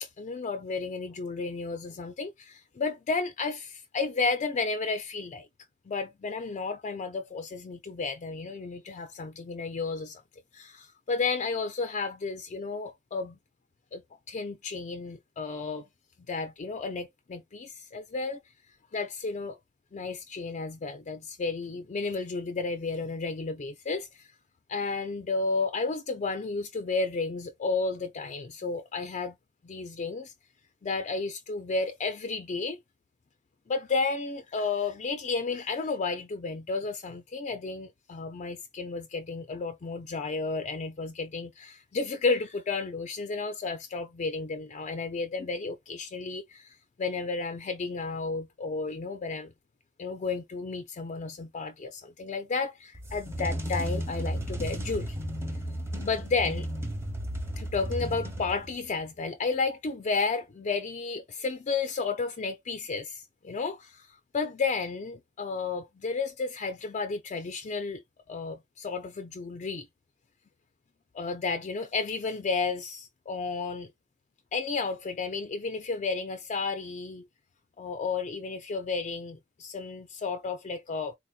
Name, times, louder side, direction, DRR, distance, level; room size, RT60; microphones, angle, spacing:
voice 1, 0.0-5.5 5.9-10.2 10.5-13.4 13.9-14.0 14.3-15.9 16.3-18.4 18.9-19.6 19.9-24.3 24.7-29.3 29.6-30.3 30.8-32.8 33.7-49.5 50.0-55.2 56.0-56.7 57.6-68.0 68.3-69.9 71.1-73.9 74.5-77.3 77.8-81.1, left 4 dB, 35° left, 0.4 m, -32 dB
sound 1, 52.9-58.9, equal, 15° right, 0.8 m, -34 dB
3.9 x 2.7 x 2.3 m
head